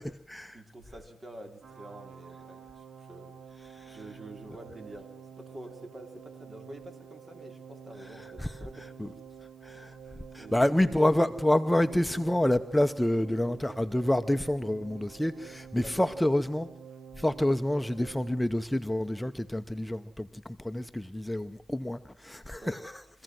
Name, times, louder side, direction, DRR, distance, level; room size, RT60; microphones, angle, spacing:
voice 1, 0.5-8.9 10.4-10.9 15.8-16.2 22.6-22.8, right 1 dB, 40° right, 5 dB, 3.6 m, -47 dB
sound 1, 1.6-18.4, right 7 dB, 80° right, 1.4 m, -49 dB
voice 2, 10.3-16.7 17.2-22.8, left 1 dB, 10° left, 8 dB, 0.8 m, -28 dB
24.0 x 15.5 x 7.7 m, 0.71 s
cardioid pair, 65°, 0 cm